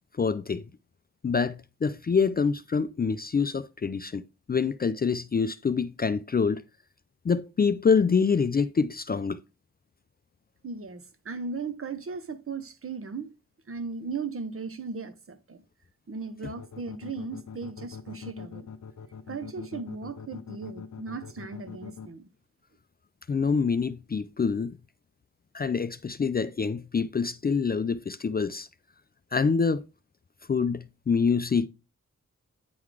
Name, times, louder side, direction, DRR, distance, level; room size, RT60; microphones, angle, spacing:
voice 1, 0.2-0.6 1.2-6.6 7.2-9.4 23.3-24.7 25.5-28.7 29.3-29.8 30.5-31.7, left 5 dB, 30° left, 0.4 m, -26 dB
voice 2, 10.6-13.3 13.7-15.6 16.1-18.7 19.3-22.3, right 4 dB, 45° right, 0.8 m, -37 dB
sound 1, 16.6-22.1, left 6 dB, 70° left, 0.7 m, -42 dB
9.4 x 3.9 x 4.7 m
wide cardioid pair, 145°, 30 cm